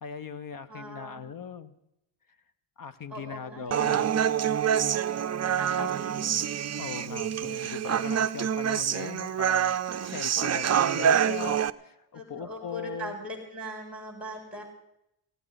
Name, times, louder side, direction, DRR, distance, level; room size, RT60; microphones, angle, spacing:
voice 1, 0.0-1.7 2.8-4.1 5.8-5.9 6.8-9.8 10.0-13.2, left 6 dB, 45° left, 13 dB, 1.3 m, -39 dB
voice 2, 0.7-1.2 3.1-4.2 5.4-6.1 12.1-14.6, right 1 dB, 5° right, 0 dB, 7.5 m, -40 dB
Human voice, 3.7-11.7, right 9 dB, 35° right, 0.6 m, -26 dB
18.5 x 17.0 x 4.2 m, 0.83 s
cardioid pair, 120°, 47 cm